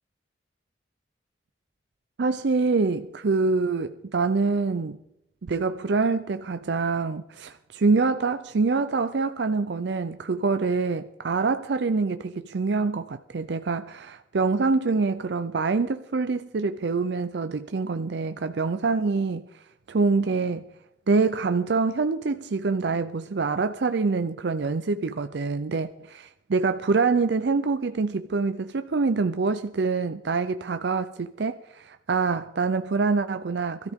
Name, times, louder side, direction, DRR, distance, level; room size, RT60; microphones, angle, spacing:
voice 1, 2.2-5.0 5.4-19.5 19.9-20.7 21.1-33.9, right 4 dB, 65° right, 0.5 m, -25 dB
22.0 x 13.5 x 3.6 m
head